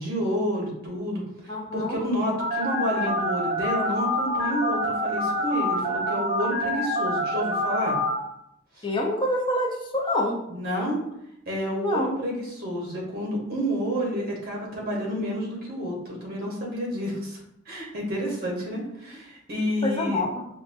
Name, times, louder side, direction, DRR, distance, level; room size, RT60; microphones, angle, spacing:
voice 1, 0.0-8.0 8.8-8.9 10.5-11.0 11.5-17.4 17.7-20.2, equal, 55° right, -2 dB, 1.2 m, -29 dB
voice 2, 1.5-2.0 8.8-10.4 11.8-12.2 19.6-20.5, left 1 dB, 25° left, -1 dB, 0.7 m, -27 dB
Telephone, 2.4-8.2, left 1 dB, 35° right, 0.7 m, -26 dB
5.2 x 2.1 x 2.6 m, 0.79 s
head